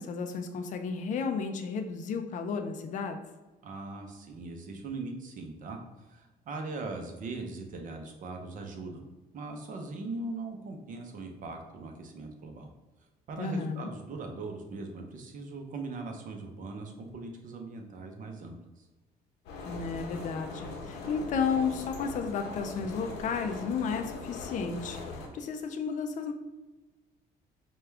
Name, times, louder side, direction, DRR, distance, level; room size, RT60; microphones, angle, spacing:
voice 1, 0.0-3.2 13.4-13.9 19.6-26.3, left 5 dB, 50° left, 5 dB, 0.5 m, -33 dB
voice 2, 3.6-5.8 6.1-9.0 9.3-12.7 13.3-18.9, right 3 dB, 50° right, 3 dB, 0.8 m, -40 dB
sound 1, 19.4-25.3, left 3 dB, 90° left, 0.9 m, -41 dB
4.8 x 2.3 x 3.3 m, 1.2 s
cardioid pair, 110°, 17 cm